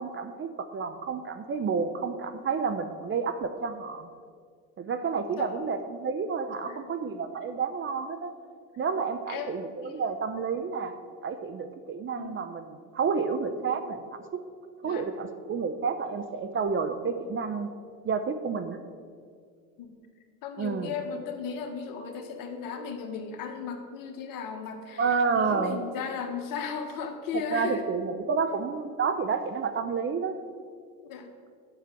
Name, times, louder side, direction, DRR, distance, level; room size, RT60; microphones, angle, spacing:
voice 1, 0.0-4.1 4.8-8.3 8.8-10.9 11.2-14.4 14.8-17.7 18.0-18.8 20.6-20.9 25.0-25.8 27.5-30.3, right 5 dB, 30° right, 9 dB, 0.7 m, -30 dB
voice 2, 5.4-5.7 6.6-6.9 9.3-10.1 12.1-12.4 14.8-15.1 19.8-20.0 20.4-27.8 31.0-31.3, left 6 dB, 50° left, 5 dB, 1.5 m, -36 dB
7.6 x 6.7 x 7.6 m, 2.1 s
hypercardioid pair, 80°, 42 cm